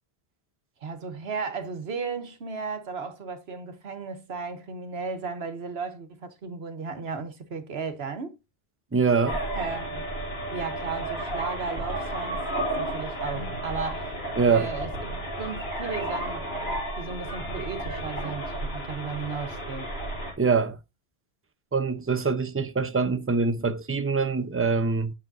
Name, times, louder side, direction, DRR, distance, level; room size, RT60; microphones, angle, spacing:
voice 1, 0.8-8.3 9.5-10.1 10.5-14.1 14.4-15.1 15.4-16.4 17.0-19.9, right 5 dB, 80° right, 1.4 m, -35 dB
voice 2, 8.9-9.4 14.4-14.7 20.4-20.8 21.7-25.1, right 5 dB, 15° right, 0.6 m, -24 dB
sound 1, 9.3-20.3, right 1 dB, 85° left, 3.9 m, -32 dB
8.7 x 6.8 x 2.7 m
omnidirectional pair, 1.0 m